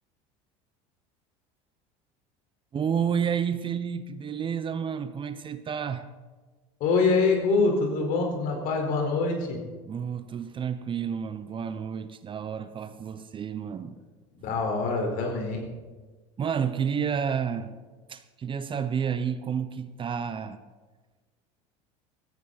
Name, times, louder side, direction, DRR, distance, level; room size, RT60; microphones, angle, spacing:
voice 1, 2.7-6.0 9.8-14.0 16.4-17.7 18.1-20.6, right 7 dB, 30° right, 11 dB, 0.9 m, -30 dB
voice 2, 6.8-9.6 14.4-15.6, left 4 dB, 60° left, 2 dB, 4.4 m, -25 dB
17.0 x 14.0 x 4.2 m, 1.3 s
supercardioid pair, 95°, 16 cm